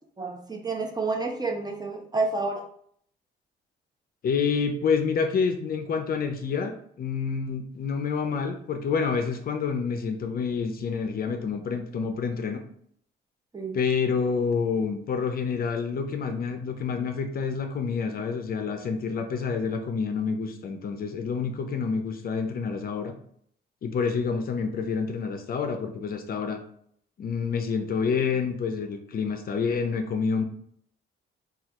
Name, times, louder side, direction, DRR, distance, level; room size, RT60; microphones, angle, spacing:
voice 1, 0.2-2.6 13.5-13.8, right 3 dB, 20° right, 2 dB, 0.5 m, -29 dB
voice 2, 4.2-12.6 13.7-23.1 23.8-26.6 27.2-30.4, left 5 dB, 50° left, 6 dB, 0.5 m, -28 dB
3.2 x 2.3 x 2.9 m, 0.64 s
cardioid pair, 90°, 20 cm